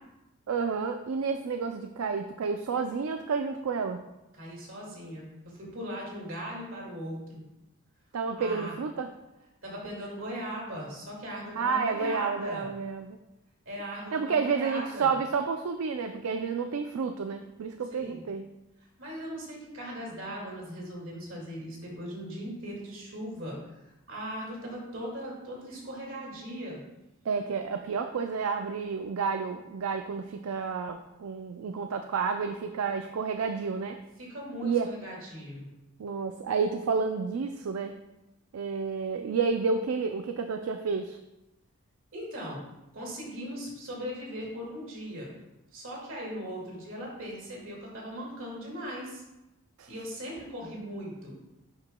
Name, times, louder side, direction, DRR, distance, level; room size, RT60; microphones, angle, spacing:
voice 1, 0.5-4.0 8.1-9.1 11.6-13.2 14.1-18.5 27.3-34.0 34.6-34.9 36.0-38.0 38.5-41.2 49.8-49.9, right 5 dB, 80° right, 6 dB, 0.4 m, -30 dB
voice 2, 4.4-7.4 8.4-8.8 9.6-12.7 13.7-15.1 17.9-18.2 19.0-23.6 24.1-26.8 34.2-35.7 42.1-42.6 42.9-45.3 45.7-49.2 49.9-51.3, equal, 65° right, -3 dB, 2.1 m, -39 dB
10.5 x 4.9 x 2.2 m, 0.97 s
head